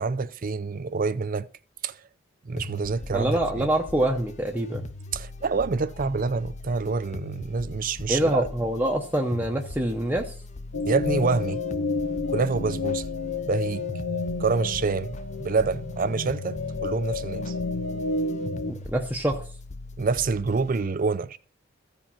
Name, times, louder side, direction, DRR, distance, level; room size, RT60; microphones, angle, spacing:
voice 1, 0.0-1.5 1.8-1.9 2.4-3.7 5.1-8.5 10.8-11.6 12.3-13.1 13.4-13.8 14.4-17.5 20.0-21.4, right 4 dB, 45° right, 0.5 m, -27 dB
sound 1, 2.6-20.9, left 2 dB, 35° left, 0.6 m, -41 dB
voice 2, 3.1-4.9 8.1-10.3 18.7-19.4, right 1 dB, 10° right, 0.8 m, -25 dB
sound 2, 10.7-18.7, left 3 dB, 80° left, 0.8 m, -30 dB
15.0 x 5.0 x 5.6 m
head